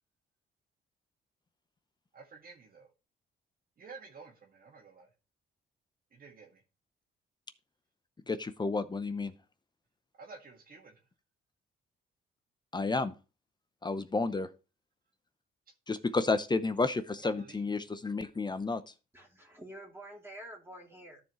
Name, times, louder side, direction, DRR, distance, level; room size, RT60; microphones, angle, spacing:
voice 1, 2.1-2.9 3.8-5.1 6.1-6.6 10.2-11.0 17.4-17.6, right 4 dB, 45° right, 1.9 m, -51 dB
voice 2, 8.3-9.3 12.7-13.1 13.8-14.5 15.9-18.8, left 3 dB, 20° left, 0.7 m, -31 dB
voice 3, 19.1-21.2, right 1 dB, 10° right, 2.5 m, -48 dB
13.5 x 4.7 x 3.0 m
cardioid pair, 90°, 20 cm